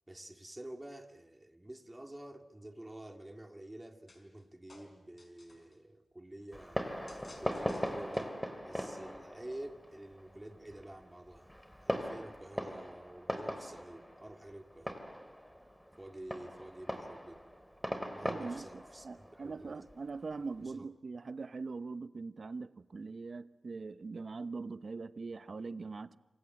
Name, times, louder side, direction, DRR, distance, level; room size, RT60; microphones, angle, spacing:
voice 1, 0.1-6.8 7.4-8.4 8.6-11.5 11.8-15.1 16.0-17.4 18.1-19.8 20.6-20.8, right 1 dB, 15° right, 2.3 m, -49 dB
sound 1, 4.1-4.4 4.7-5.8 7.1-8.5, left 2 dB, 40° left, 4.6 m, -58 dB
Fireworks, 6.5-20.7, equal, 5° left, 2.9 m, -41 dB
voice 2, 18.2-26.2, right 4 dB, 55° right, 0.9 m, -42 dB
28.0 x 26.0 x 7.8 m
wide cardioid pair, 85°, 0 cm